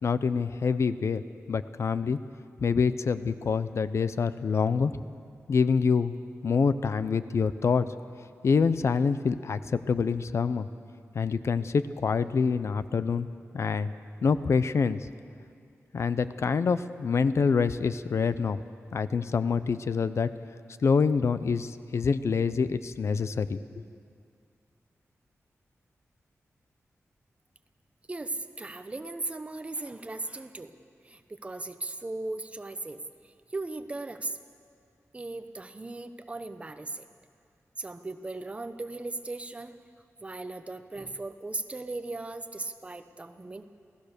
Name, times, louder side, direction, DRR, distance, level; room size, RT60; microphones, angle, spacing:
voice 1, 0.0-1.2 1.5-2.2 2.6-4.9 5.5-6.1 6.4-7.9 8.4-10.7 11.1-13.3 13.5-13.9 14.2-15.1 15.9-18.6 18.9-20.3 20.8-23.8, left 5 dB, 60° left, 13 dB, 0.6 m, -26 dB
voice 2, 28.1-30.7 31.0-34.4 35.1-37.0 37.8-39.8 40.2-43.6, right 2 dB, 25° right, 9 dB, 0.9 m, -37 dB
27.5 x 17.5 x 6.7 m, 2.3 s
wide cardioid pair, 165°, 5 cm